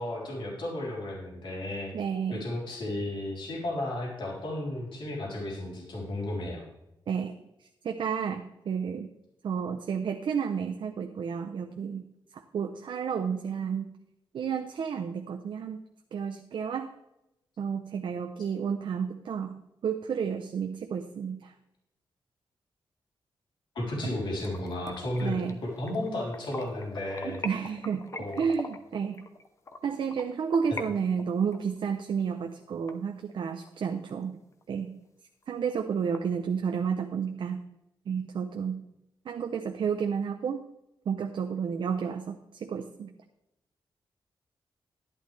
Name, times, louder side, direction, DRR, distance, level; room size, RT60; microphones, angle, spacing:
voice 1, 0.0-1.9 2.3-6.6 23.8-27.4 28.2-28.4, left 1 dB, 70° left, -3 dB, 3.6 m, -33 dB
voice 2, 1.9-2.5 7.1-7.3 7.6-9.1 9.4-13.9 14.3-15.8 16.1-16.9 17.6-21.5 25.2-25.6 27.2-29.3 29.8-34.4 34.7-35.0 35.5-37.6 38.1-38.9 39.3-40.7 41.1-43.1, right 6 dB, 70° right, 5 dB, 0.7 m, -31 dB
sound 1, 24.4-30.9 31.2-33.7 34.1-34.2 34.6-34.7 35.0-35.1 35.4-36.2, left 3 dB, 35° left, 0.8 m, -43 dB
11.5 x 11.0 x 3.3 m, 0.87 s
wide cardioid pair, 180°, 9 cm